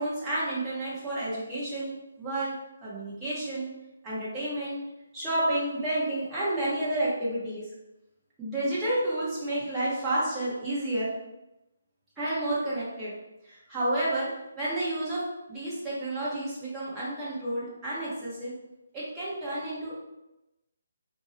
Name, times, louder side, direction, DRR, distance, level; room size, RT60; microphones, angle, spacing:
voice 1, 0.0-2.5 2.8-3.7 4.0-4.8 5.1-7.7 8.4-11.1 12.2-13.1 13.5-14.3 14.6-15.2 15.5-18.5 18.9-20.1, right 1 dB, 15° right, -9 dB, 0.9 m, -30 dB
2.5 x 2.0 x 2.6 m, 0.96 s
figure-of-eight pair, 150°, 0 cm